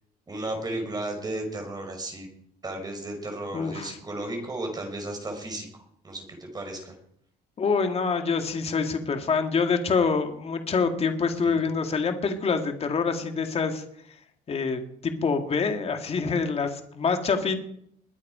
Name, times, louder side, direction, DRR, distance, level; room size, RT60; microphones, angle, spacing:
voice 1, 0.3-2.3 2.6-6.9 11.5-11.6, right 1 dB, 25° right, 3 dB, 4.7 m, -34 dB
voice 2, 3.5-4.0 7.6-13.8 14.5-17.6, left 5 dB, 35° left, 6 dB, 2.1 m, -26 dB
22.0 x 8.5 x 5.1 m, 0.69 s
cardioid pair, 110°, 17 cm